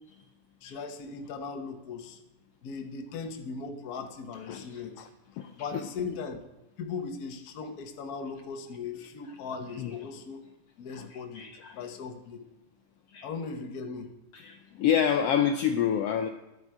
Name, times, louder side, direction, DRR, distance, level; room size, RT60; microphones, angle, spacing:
voice 1, 0.6-2.2 2.6-5.1 5.6-6.4 6.8-10.4 10.8-12.5 13.2-14.1, left 5 dB, 65° left, 6 dB, 0.9 m, -38 dB
voice 2, 4.5-5.1 5.4-5.8 9.7-9.9 10.9-11.8 13.1-13.3 14.3-16.3, left 8 dB, 90° left, 7 dB, 1.3 m, -29 dB
12.5 x 11.0 x 4.9 m, 0.97 s
omnidirectional pair, 3.4 m